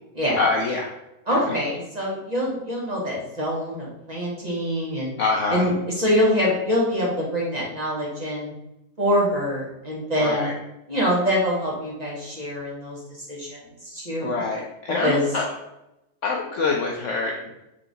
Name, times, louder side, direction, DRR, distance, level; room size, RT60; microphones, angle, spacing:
voice 1, 0.4-0.9 1.3-1.6 5.2-5.6 10.2-10.5 14.2-15.5 16.2-17.4, left 4 dB, 65° left, 0 dB, 0.7 m, -25 dB
voice 2, 1.3-5.1 5.5-8.5 9.0-10.5 10.9-14.3 15.0-15.2, equal, 30° right, -5 dB, 1.1 m, -25 dB
3.8 x 3.3 x 3.9 m, 0.88 s
omnidirectional pair, 1.7 m